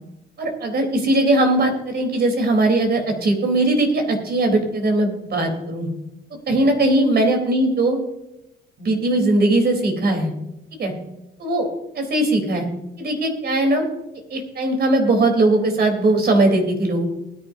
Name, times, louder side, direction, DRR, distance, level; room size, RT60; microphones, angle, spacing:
voice 1, 0.4-5.9 6.5-8.0 8.8-10.3 10.8-10.9 11.4-11.7 11.9-12.7 13.0-13.8 14.3-17.0, right 2 dB, 55° right, 3 dB, 4.0 m, -19 dB
20.0 x 10.5 x 2.8 m, 0.90 s
cardioid pair, 90°, 20 cm